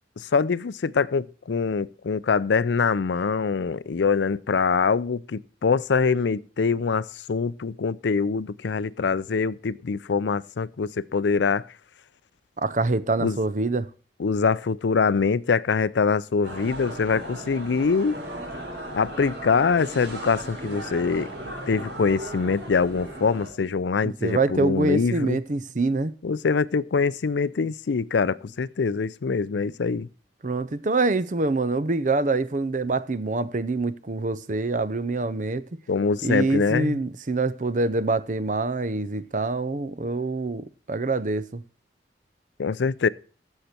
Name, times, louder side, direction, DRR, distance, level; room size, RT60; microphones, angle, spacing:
voice 1, 0.2-11.7 13.2-13.4 14.2-18.2 18.9-21.3 21.7-25.4 26.2-30.1 35.9-37.0 42.6-43.1, left 5 dB, 80° left, 0.5 m, -24 dB
voice 2, 12.6-13.9 24.0-26.1 30.4-35.6 36.2-41.6, right 3 dB, 45° right, 0.6 m, -25 dB
sound 1, 16.4-23.5, right 1 dB, 70° right, 4.6 m, -36 dB
15.0 x 6.6 x 4.4 m
head